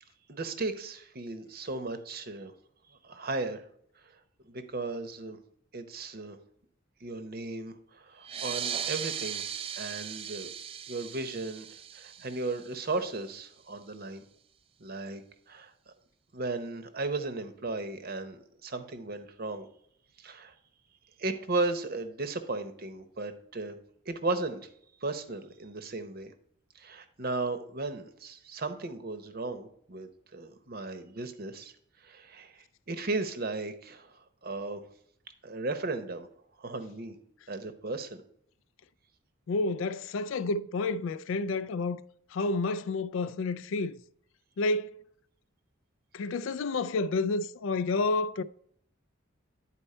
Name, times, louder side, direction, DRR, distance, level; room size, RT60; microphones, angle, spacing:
voice 1, 0.3-2.5 3.0-3.6 4.1-4.2 4.5-5.4 5.7-6.4 7.0-9.5 9.8-10.5 10.9-11.7 11.9-14.2 14.8-15.9 16.3-19.7 20.2-20.5 21.2-23.8 24.1-24.6 25.0-26.3 26.7-31.7 32.0-34.8 35.4-36.3 36.6-37.2 37.5-38.2, right 3 dB, 45° right, 0.8 m, -35 dB
sound 1, 8.2-13.3, right 8 dB, 25° right, 0.4 m, -38 dB
voice 2, 39.5-42.0 42.3-44.0 44.6-45.0 46.1-48.4, left 3 dB, 70° left, 0.3 m, -30 dB
10.0 x 4.4 x 4.3 m
head